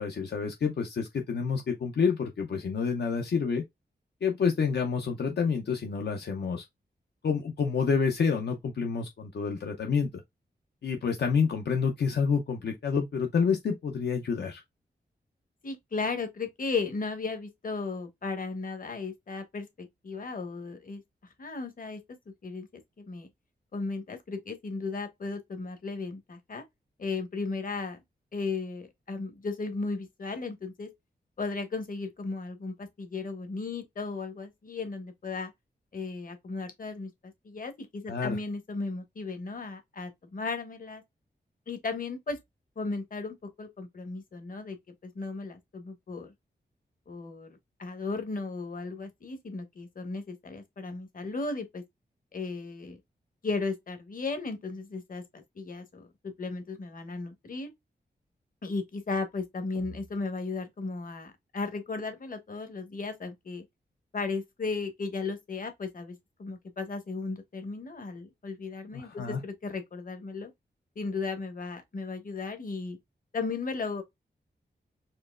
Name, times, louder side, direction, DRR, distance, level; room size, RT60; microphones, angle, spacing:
voice 1, 0.0-3.6 4.2-6.6 7.2-10.1 10.8-14.6 38.1-38.4 68.9-69.4, left 5 dB, 70° left, 0.7 m, -28 dB
voice 2, 15.6-21.0 21.4-22.0 22.4-23.3 23.7-26.6 27.0-28.0 28.3-30.9 31.4-35.5 35.9-37.1 37.4-41.0 41.7-42.4 42.8-44.8 45.0-46.3 47.1-51.8 52.3-53.0 53.4-57.7 58.6-63.6 64.1-70.5 70.9-73.0 73.3-74.0, left 3 dB, 50° left, 1.2 m, -35 dB
4.4 x 3.0 x 2.4 m
wide cardioid pair, 80°, 18 cm